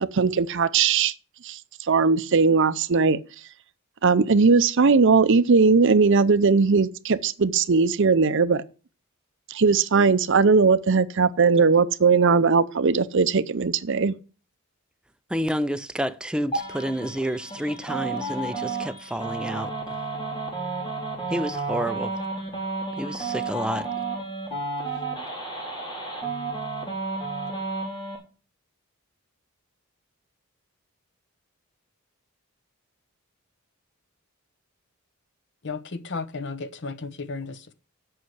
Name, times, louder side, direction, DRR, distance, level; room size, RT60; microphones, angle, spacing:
voice 1, 0.0-1.1 1.4-1.6 1.9-3.2 4.0-8.6 9.5-14.1, right 4 dB, 55° right, 0.6 m, -19 dB
voice 2, 15.3-19.7 21.3-22.1 23.0-23.9, equal, 5° right, 0.4 m, -29 dB
sound 1, 16.5-28.2, right 3 dB, 20° left, 3.3 m, -32 dB
voice 3, 35.6-37.7, left 4 dB, 55° left, 0.8 m, -34 dB
7.8 x 5.8 x 7.9 m
head